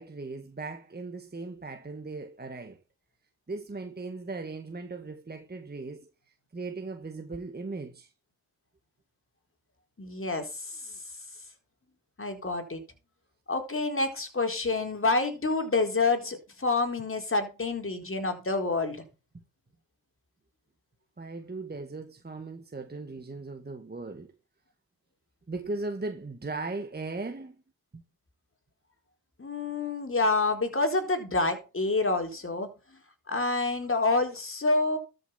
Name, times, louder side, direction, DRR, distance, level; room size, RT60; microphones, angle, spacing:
voice 1, 0.0-2.8 3.5-6.1 6.5-8.1 21.2-24.3 25.5-27.6 27.9-28.0, right 3 dB, 20° right, 1.8 m, -38 dB
voice 2, 10.0-10.8 12.2-12.8 13.5-19.0 29.4-32.7 33.3-35.0, left 3 dB, 25° left, 4.2 m, -28 dB
13.0 x 6.8 x 5.8 m
supercardioid pair, 60°, 47 cm